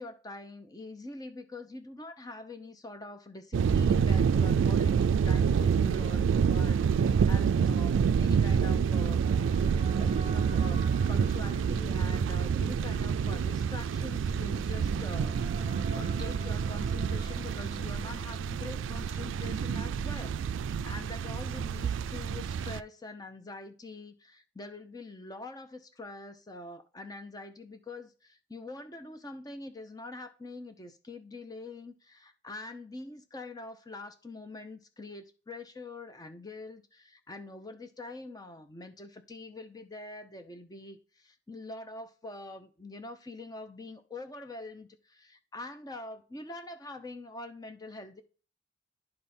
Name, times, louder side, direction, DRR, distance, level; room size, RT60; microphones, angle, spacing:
voice 1, 0.0-48.2, left 2 dB, 20° left, 0.7 m, -44 dB
sound 1, 3.5-22.8, right 6 dB, 85° right, 0.3 m, -27 dB
sound 2, 8.8-18.7, right 1 dB, 25° right, 1.3 m, -47 dB
10.5 x 3.6 x 4.3 m
head